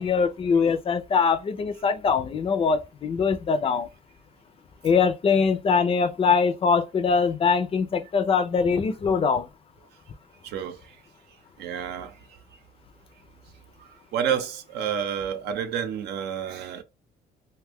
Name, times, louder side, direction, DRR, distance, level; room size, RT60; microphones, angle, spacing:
voice 1, 0.0-3.9 4.8-9.5, left 5 dB, 35° left, 0.4 m, -22 dB
voice 2, 10.4-10.8 11.6-12.1 14.1-16.8, right 8 dB, 80° right, 0.7 m, -29 dB
2.6 x 2.3 x 3.4 m
cardioid pair, 110°, 17 cm